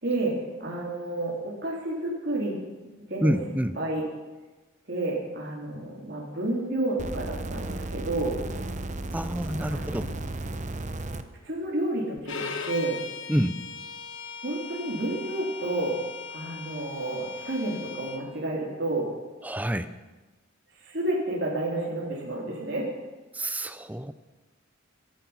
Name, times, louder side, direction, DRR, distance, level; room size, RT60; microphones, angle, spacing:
voice 1, 0.0-2.6 3.1-3.3 3.8-4.0 4.9-8.4 9.7-10.3 11.4-13.0 14.4-16.0 16.3-19.1 20.8-22.9, right 2 dB, 55° right, -4 dB, 3.3 m, -30 dB
voice 2, 3.2-3.8 9.1-10.1 13.3-13.6 19.4-19.9 23.3-24.1, equal, 10° right, 12 dB, 0.6 m, -27 dB
sound 1, 7.0-11.2 12.2-12.3, right 2 dB, 35° right, 0.9 m, -34 dB
Bowed string instrument, 12.3-18.2, left 5 dB, 70° left, 1.6 m, -39 dB
23.5 x 10.5 x 5.7 m, 1.2 s
head